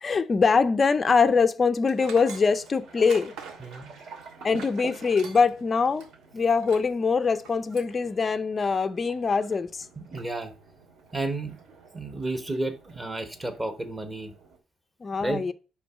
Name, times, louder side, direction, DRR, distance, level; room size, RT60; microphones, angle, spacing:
voice 1, 0.0-3.3 4.4-6.0 6.3-9.9 15.0-15.5, left 5 dB, 20° left, 0.5 m, -23 dB
Tools, 1.8-5.6 5.9-6.1 6.6-6.9 7.3-7.9, right 6 dB, 85° right, 1.6 m, -44 dB
sound 1, 2.0-14.6, right 5 dB, 55° right, 2.7 m, -49 dB
voice 2, 3.6-3.9 10.0-10.5 11.1-11.6 11.9-14.3 15.2-15.4, right 2 dB, 15° right, 1.2 m, -32 dB
10.5 x 3.7 x 5.7 m
cardioid pair, 175°, 0 cm